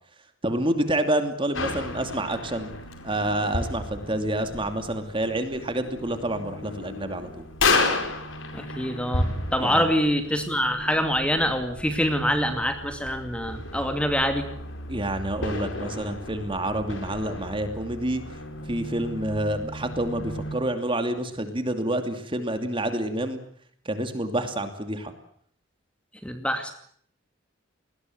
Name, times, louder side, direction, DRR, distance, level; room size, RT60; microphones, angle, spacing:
voice 1, 0.4-2.7 3.0-7.5 9.6-9.9 14.9-18.2 18.7-23.4 23.8-25.1, right 1 dB, 25° right, 8 dB, 2.7 m, -28 dB
sound 1, 1.5-20.5, left 2 dB, 75° left, 5.0 m, -33 dB
voice 2, 8.5-14.5 26.2-26.7, equal, 5° left, 6 dB, 2.4 m, -25 dB
28.5 x 20.5 x 7.9 m, 0.63 s
head